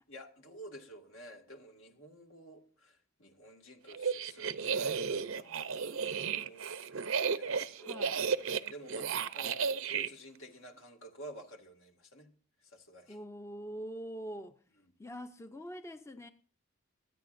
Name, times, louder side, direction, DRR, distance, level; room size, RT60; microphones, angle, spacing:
voice 1, 0.1-6.7 7.3-8.2 8.5-12.3 12.6-13.2 14.8-14.9, equal, 70° left, 2.1 m, -52 dB
sound 1, 3.9-10.1, right 6 dB, 75° right, 0.7 m, -33 dB
voice 2, 7.8-8.2 13.1-14.5 15.0-16.3, equal, 15° left, 0.6 m, -44 dB
26.5 x 9.8 x 2.6 m
head